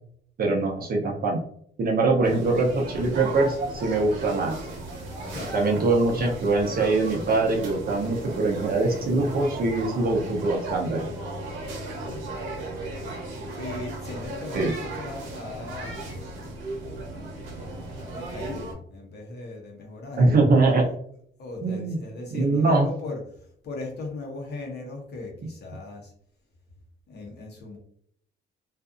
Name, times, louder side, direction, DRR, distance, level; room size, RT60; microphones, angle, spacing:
voice 1, 0.4-1.4 1.8-4.6 5.5-11.1 14.5-14.7 20.2-20.8 21.6-22.0 22.3-22.9, right 3 dB, 50° right, 0 dB, 0.7 m, -23 dB
sound 1, 2.2-18.7, right 2 dB, 80° right, 0.9 m, -36 dB
voice 2, 11.9-12.3 13.6-16.2 17.6-20.9 21.4-26.1 27.1-27.8, left 2 dB, 55° left, 0 dB, 0.9 m, -38 dB
2.6 x 2.4 x 2.4 m, 0.64 s
cardioid pair, 90°, 20 cm